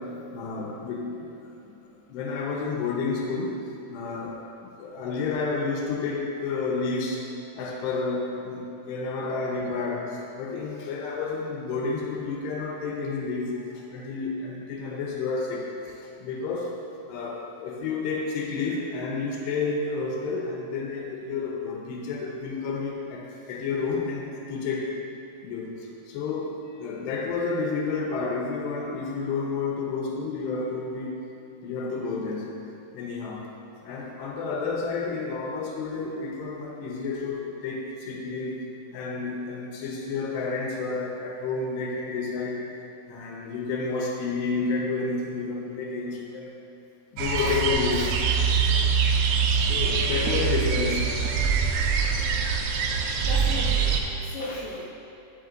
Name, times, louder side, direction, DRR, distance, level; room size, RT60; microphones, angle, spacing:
voice 1, 0.0-1.3 1.6-1.7 2.1-7.2 7.6-16.8 17.1-24.9 25.4-31.2 31.6-32.6 32.9-33.5 33.8-38.6 38.9-42.7 43.1-46.6 47.1-48.2 49.6-51.1, left 4 dB, 85° left, -1 dB, 2.9 m, -30 dB
sound 1, 47.2-54.0, right 6 dB, 90° right, 2.7 m, -24 dB
voice 2, 53.2-54.9, left 1 dB, 50° left, -9 dB, 1.9 m, -37 dB
11.0 x 6.5 x 2.5 m, 2.9 s
omnidirectional pair, 4.8 m